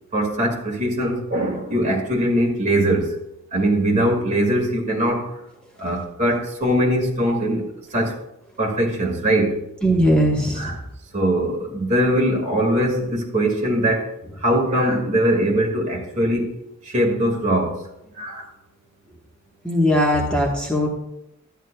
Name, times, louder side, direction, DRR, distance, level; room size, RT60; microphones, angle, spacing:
voice 1, 0.1-3.2 3.5-5.3 5.8-7.6 7.9-8.2 8.6-9.6 10.5-10.8 11.1-16.5 16.8-17.9 18.2-18.5, right 1 dB, 35° right, 0 dB, 1.9 m, -21 dB
voice 2, 9.8-10.7 19.6-20.9, equal, 5° left, -3 dB, 1.2 m, -19 dB
12.5 x 10.0 x 2.3 m, 0.84 s
head